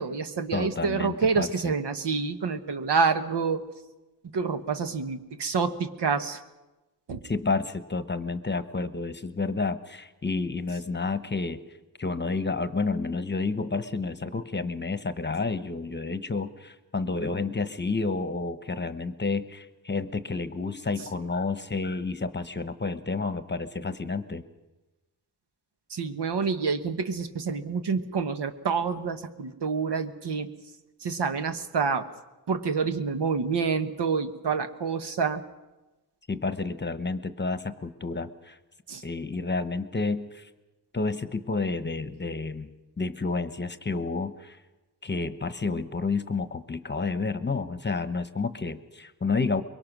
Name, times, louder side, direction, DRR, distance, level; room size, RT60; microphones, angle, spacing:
voice 1, 0.0-3.6 4.3-6.4 7.1-7.2 21.0-21.1 25.9-30.5 31.0-32.1 32.5-35.4 38.9-39.0, right 5 dB, 80° right, 8 dB, 1.3 m, -28 dB
voice 2, 0.5-1.7 7.2-11.6 12.0-24.4 36.3-38.6 39.0-40.5 40.9-42.7 43.0-44.6 45.0-49.6, left 4 dB, 25° left, 11 dB, 1.0 m, -30 dB
23.5 x 22.5 x 6.1 m, 1.1 s
wide cardioid pair, 120°, 41 cm